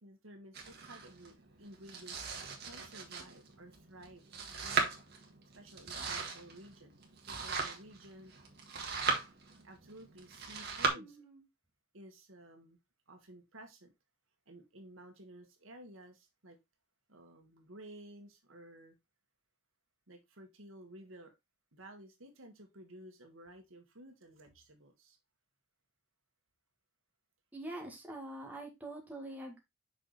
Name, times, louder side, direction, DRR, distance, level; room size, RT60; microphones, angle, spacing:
voice 1, 0.0-2.2 2.6-4.3 4.6-4.9 5.5-7.0 7.2-8.3 9.6-11.2 11.9-12.8 13.1-13.9 14.5-16.6 17.1-19.0 20.1-21.3 21.7-25.2, right 1 dB, 80° right, 1.7 m, -54 dB
Domestic sounds home sounds, 0.5-10.9, right 4 dB, 50° right, 1.7 m, -39 dB
voice 2, 11.0-11.4 27.5-29.6, right 1 dB, 10° right, 1.9 m, -45 dB
6.1 x 4.9 x 4.0 m
head